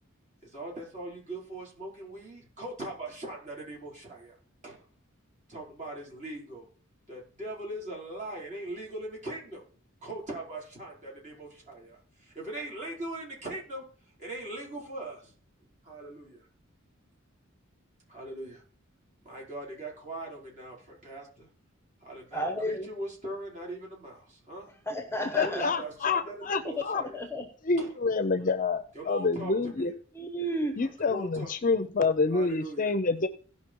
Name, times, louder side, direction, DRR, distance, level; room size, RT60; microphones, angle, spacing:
voice 1, 0.4-4.3 4.6-4.8 5.5-6.7 7.1-9.6 10.0-13.9 14.2-15.3 15.8-16.4 18.1-18.6 19.2-21.5 22.0-24.7 25.3-27.2 27.8-27.9 28.9-29.5 31.0-31.5 32.3-32.9, right 1 dB, 35° right, -3 dB, 4.6 m, -40 dB
voice 2, 22.3-22.9 24.9-25.6 27.3-27.4 30.2-30.8, right 1 dB, 10° left, 7 dB, 0.8 m, -31 dB
voice 3, 25.3-27.0 27.6-29.9 30.8-33.3, left 4 dB, 40° left, 12 dB, 0.6 m, -27 dB
16.5 x 5.7 x 4.6 m, 0.42 s
head